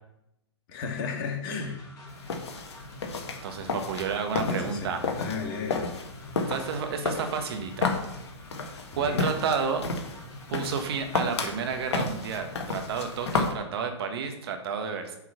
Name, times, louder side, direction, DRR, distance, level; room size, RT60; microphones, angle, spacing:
voice 1, 0.7-1.9 2.2-2.3 4.0-4.1 4.3-5.9 8.9-9.4, left 5 dB, 45° left, 2 dB, 2.2 m, -34 dB
sound 1, 1.6-13.5, left 1 dB, 25° left, 3.1 m, -47 dB
sound 2, 2.1-13.5, left 4 dB, 65° left, 1.6 m, -32 dB
voice 2, 3.4-5.0 6.5-7.9 9.0-9.8 10.5-15.2, right 6 dB, 55° right, 6 dB, 1.4 m, -31 dB
8.2 x 4.6 x 5.9 m, 0.84 s
hypercardioid pair, 120°, 15 cm